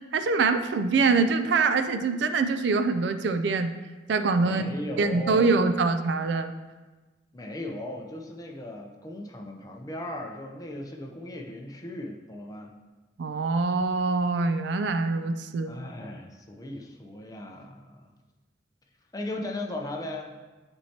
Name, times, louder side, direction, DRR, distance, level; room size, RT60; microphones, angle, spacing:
voice 1, 0.1-3.7 4.1-4.6 5.0-6.5 13.2-15.7, right 4 dB, 65° right, 9 dB, 0.4 m, -24 dB
voice 2, 4.4-5.7 7.3-12.7 15.7-18.1 19.1-20.4, left 1 dB, 20° left, 2 dB, 0.6 m, -37 dB
10.0 x 4.5 x 2.8 m, 1.3 s
head